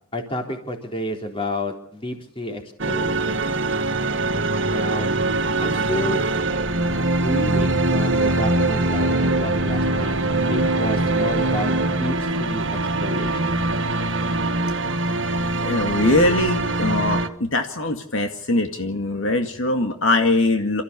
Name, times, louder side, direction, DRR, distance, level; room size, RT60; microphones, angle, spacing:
voice 1, 0.1-3.5 4.7-5.1 5.6-6.3 7.2-10.2 10.5-13.6, left 1 dB, 25° left, 3 dB, 3.7 m, -30 dB
sound 1, 2.8-17.3, right 2 dB, 55° right, 1.8 m, -22 dB
voice 2, 15.1-20.8, left 2 dB, 65° left, 5 dB, 2.2 m, -22 dB
28.5 x 14.5 x 7.0 m, 0.70 s
head